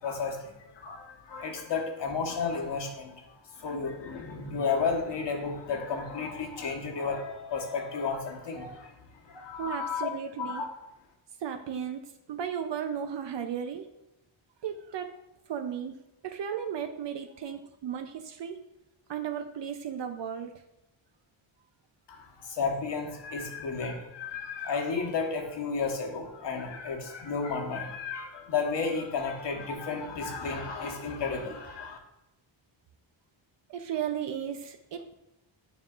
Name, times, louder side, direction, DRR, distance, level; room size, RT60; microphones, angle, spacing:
voice 1, 0.0-8.9 9.2-10.1 10.4-10.7 22.1-32.0, left 5 dB, 60° left, 2 dB, 1.2 m, -33 dB
voice 2, 9.6-10.6 11.4-13.9 14.6-15.2 15.5-16.0 16.2-18.6 19.1-20.5 33.7-35.1, right 8 dB, 65° right, 6 dB, 0.6 m, -35 dB
9.3 x 5.5 x 2.4 m, 0.88 s
wide cardioid pair, 160°, 47 cm